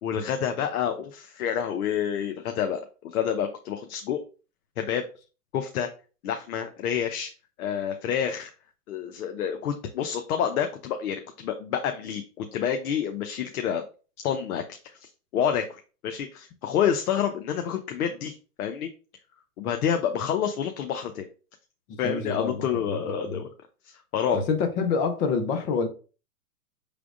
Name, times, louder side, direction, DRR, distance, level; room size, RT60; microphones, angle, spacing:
voice 1, 0.0-4.2 4.8-5.0 5.5-5.9 6.2-7.3 7.6-8.5 8.9-13.8 14.2-14.6 15.0-18.9 19.6-21.3 22.0-23.5 23.8-24.4, left 8 dB, 65° left, 0.8 m, -28 dB
voice 2, 21.9-23.4 24.3-25.9, left 5 dB, 20° left, 0.5 m, -27 dB
5.9 x 3.4 x 2.4 m
hypercardioid pair, 130°, 46 cm